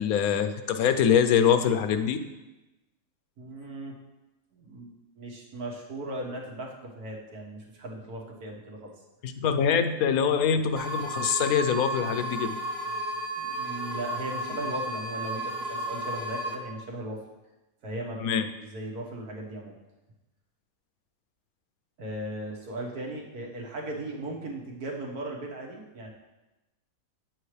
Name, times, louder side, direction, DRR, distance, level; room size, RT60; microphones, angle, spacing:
voice 1, 0.0-2.2 9.2-12.6 18.2-18.5, left 7 dB, 80° left, 9 dB, 1.1 m, -24 dB
voice 2, 3.4-4.0 4.5-8.9 13.4-17.2 17.8-18.2 18.6-19.8 22.0-26.1, right 1 dB, 90° right, -1 dB, 1.9 m, -37 dB
sound 1, 10.8-16.5, right 1 dB, 45° right, 1.2 m, -33 dB
9.0 x 7.7 x 3.2 m, 1.0 s
omnidirectional pair, 1.6 m